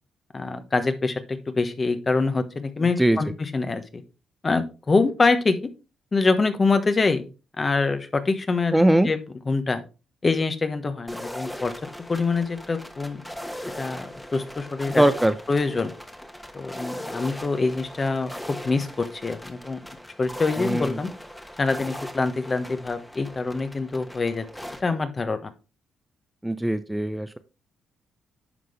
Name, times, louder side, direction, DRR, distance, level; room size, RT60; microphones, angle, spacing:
voice 1, 0.3-4.0 4.4-5.6 6.1-7.2 7.6-9.8 10.2-11.7 12.1-13.2 13.8-15.0 15.5-15.9 16.5-18.3 18.6-19.8 20.2-21.1 21.6-24.4 24.8-25.5, left 3 dB, 35° left, 9 dB, 1.1 m, -25 dB
voice 2, 8.7-9.1 15.0-15.3 20.6-21.0 26.4-27.4, right 1 dB, 10° right, 12 dB, 0.6 m, -20 dB
sound 1, 11.1-24.8, equal, 10° left, 1.3 m, -39 dB
11.0 x 3.8 x 3.3 m, 0.31 s
supercardioid pair, 55°, 0 cm